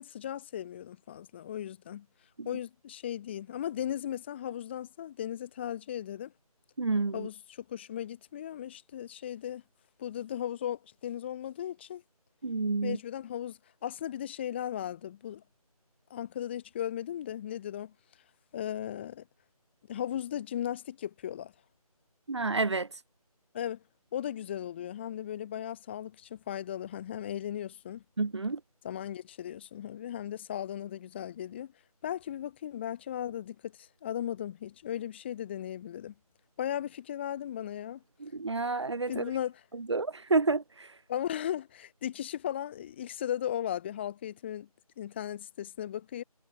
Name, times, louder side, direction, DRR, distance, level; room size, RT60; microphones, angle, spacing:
voice 1, 0.0-2.1 2.5-6.3 7.1-9.6 10.0-12.0 12.8-15.4 16.1-17.9 18.5-19.2 19.9-21.5 23.5-23.8 24.1-28.0 28.8-31.7 32.0-36.1 36.6-38.0 39.1-39.6 41.1-44.7 45.0-46.2, left 10 dB, 15° left, 6.8 m, -36 dB
voice 2, 6.8-7.3 12.4-13.0 22.3-22.9 28.2-28.6 38.2-39.2 39.9-40.9, right 3 dB, 45° right, 3.1 m, -29 dB
figure-of-eight pair, 165°, 20 cm